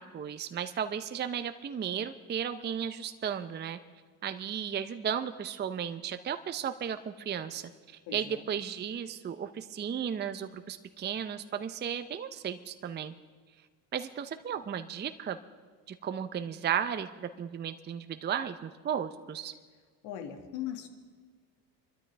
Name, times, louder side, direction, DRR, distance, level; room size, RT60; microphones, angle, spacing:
voice 1, 0.0-3.8 4.2-7.7 8.1-13.1 13.9-15.4 15.9-19.5, right 8 dB, 20° right, 9 dB, 0.6 m, -34 dB
voice 2, 8.1-8.4 20.0-20.9, left 10 dB, 70° left, 6 dB, 2.1 m, -39 dB
24.5 x 13.0 x 3.4 m, 1.5 s
supercardioid pair, 90°, 48 cm